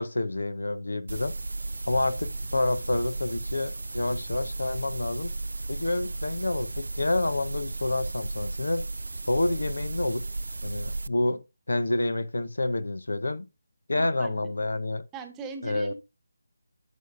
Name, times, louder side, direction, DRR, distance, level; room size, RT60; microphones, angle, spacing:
voice 1, 0.0-1.3 1.9-5.3 5.7-8.8 9.3-10.2 10.6-13.5 13.9-15.0 15.6-15.9, left 2 dB, 70° left, 0.7 m, -28 dB
sound 1, 1.1-11.1, right 2 dB, 70° right, 0.3 m, -34 dB
voice 2, 14.0-14.5 15.1-15.9, right 4 dB, 10° right, 1.1 m, -40 dB
11.0 x 6.9 x 2.6 m
figure-of-eight pair, 155°, 0 cm